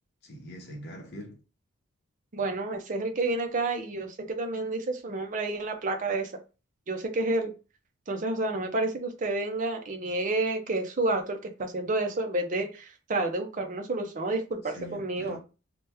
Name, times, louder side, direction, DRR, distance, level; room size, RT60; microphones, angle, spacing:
voice 1, 0.2-1.4 14.6-15.4, equal, 45° left, 0.7 m, -43 dB
voice 2, 2.3-6.3 6.9-7.5 8.1-15.4, right 2 dB, 35° right, 0.5 m, -30 dB
2.9 x 2.1 x 3.3 m
head